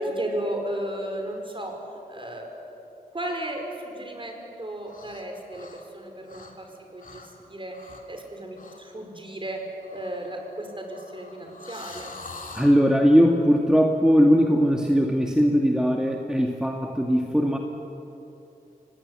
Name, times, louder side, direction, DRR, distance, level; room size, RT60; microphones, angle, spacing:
voice 1, 0.0-1.8 2.1-2.5 3.1-9.6 9.9-12.1, right 1 dB, 35° right, 3 dB, 5.2 m, -34 dB
sound 1, 4.8-5.3 5.5-6.7 7.0-7.3 7.7-8.1 8.6-8.8 9.8-12.8, left 3 dB, 60° left, 2.9 m, -44 dB
voice 2, 12.5-17.6, equal, 5° right, 1 dB, 1.9 m, -20 dB
25.0 x 18.5 x 9.8 m, 2.9 s
wide cardioid pair, 65°, 16 cm